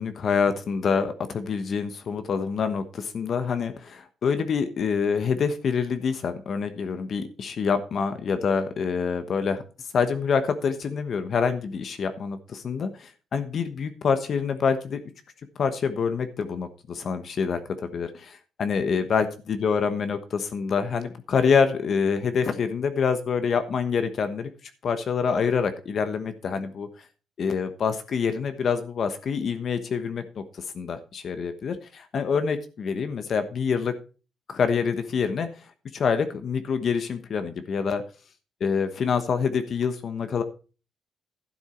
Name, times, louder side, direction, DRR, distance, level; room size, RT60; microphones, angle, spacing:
voice 1, 0.0-9.6 9.9-15.0 15.6-24.5 24.8-26.9 27.4-33.9 34.5-35.5 35.9-38.0 38.6-40.4, left 6 dB, 55° left, 9 dB, 1.2 m, -26 dB
12.0 x 7.2 x 4.4 m, 0.35 s
cardioid pair, 90°, 0 cm